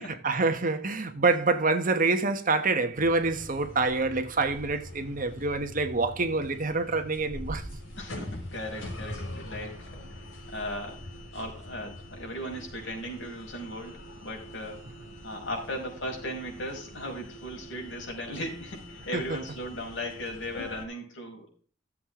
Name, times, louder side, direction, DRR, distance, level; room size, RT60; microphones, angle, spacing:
voice 1, 0.2-7.7, right 3 dB, 45° right, 1.3 m, -26 dB
sound 1, 2.9-20.8, left 1 dB, 85° left, 4.5 m, -43 dB
voice 2, 8.0-11.0 11.3-14.9 15.2-21.5, equal, 65° left, 5.2 m, -37 dB
14.5 x 7.7 x 3.7 m
head